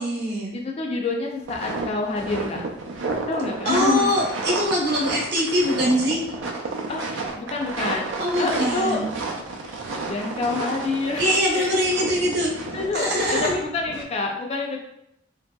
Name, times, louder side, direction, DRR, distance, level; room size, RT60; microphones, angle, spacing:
voice 1, 0.0-0.5 3.6-6.4 8.2-9.0 11.2-12.5 12.9-13.5, equal, 55° right, -3 dB, 0.8 m, -23 dB
voice 2, 0.5-2.6 3.3-4.1 6.9-7.0 7.4-9.0 10.1-11.3 11.5-11.8 12.7-14.8, left 3 dB, 30° left, 0 dB, 0.3 m, -27 dB
sound 1, 1.5-14.0, right 3 dB, 90° right, 0.4 m, -31 dB
2.9 x 2.7 x 2.2 m, 0.78 s
head